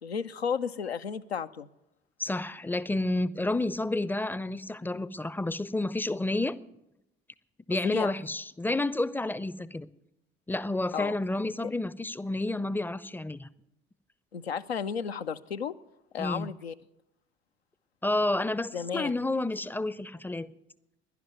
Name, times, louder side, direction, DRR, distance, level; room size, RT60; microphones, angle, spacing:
voice 1, 0.0-1.7 7.8-8.1 10.9-11.2 14.3-15.7 16.1-16.7 18.7-19.1, left 7 dB, 85° left, 9 dB, 0.5 m, -33 dB
voice 2, 2.2-6.6 7.7-9.9 10.5-13.5 16.2-16.5 18.0-20.5, left 2 dB, 5° left, 19 dB, 0.5 m, -30 dB
11.0 x 10.5 x 9.3 m, 0.88 s
figure-of-eight pair, 55°, 30 cm